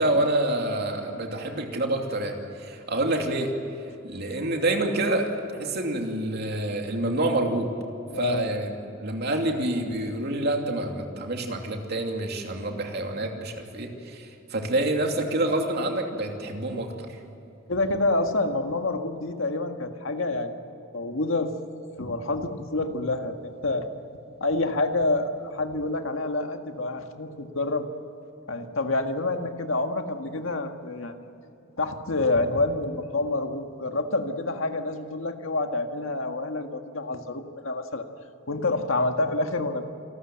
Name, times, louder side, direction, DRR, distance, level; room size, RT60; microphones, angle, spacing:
voice 1, 0.0-3.5 4.0-7.7 8.1-8.7 9.0-17.1, right 1 dB, 55° right, 3 dB, 2.8 m, -27 dB
voice 2, 8.1-8.5 17.7-20.5 20.9-21.5 22.0-23.9 24.4-27.9 28.5-31.2 31.8-38.0 38.5-39.8, left 2 dB, 85° left, 6 dB, 1.7 m, -27 dB
28.0 x 13.0 x 9.0 m, 2.9 s
head